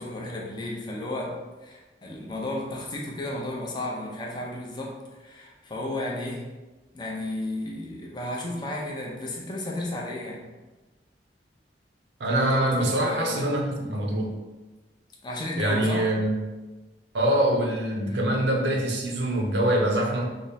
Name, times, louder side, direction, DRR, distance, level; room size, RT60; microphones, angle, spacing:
voice 1, 0.0-6.5 6.9-10.4 12.3-13.5 15.2-16.1 18.0-18.3, left 1 dB, 25° left, -2 dB, 0.6 m, -33 dB
voice 2, 12.2-14.3 15.6-16.3 17.1-20.2, right 1 dB, 75° right, 1 dB, 0.6 m, -24 dB
3.4 x 2.0 x 4.1 m, 1.2 s
head